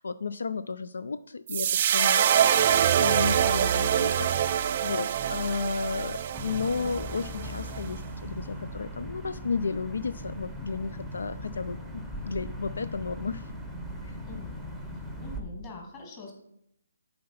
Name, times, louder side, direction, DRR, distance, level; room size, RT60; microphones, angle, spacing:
voice 1, 0.0-2.5 3.0-13.5 14.0-14.2, left 4 dB, 75° left, 13 dB, 0.3 m, -33 dB
sound 1, 1.5-7.8, right 9 dB, 35° right, 0.4 m, -25 dB
sound 2, 6.3-15.4, equal, ahead, 0.8 m, -39 dB
voice 2, 15.2-16.3, left 3 dB, 20° left, 0 dB, 2.0 m, -43 dB
7.6 x 4.3 x 5.6 m, 0.77 s
hypercardioid pair, 160°, 0 cm